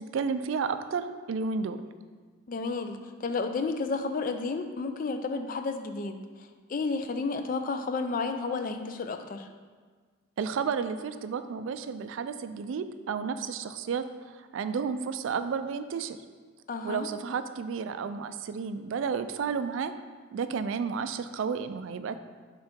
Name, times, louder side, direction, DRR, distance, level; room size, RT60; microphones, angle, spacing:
voice 1, 0.0-1.8 10.4-16.2 16.8-19.9 20.3-22.2, right 5 dB, 70° right, 11 dB, 0.3 m, -32 dB
voice 2, 2.5-9.5 16.7-17.1, left 4 dB, 40° left, 8 dB, 0.3 m, -32 dB
5.7 x 3.8 x 4.3 m, 1.5 s
head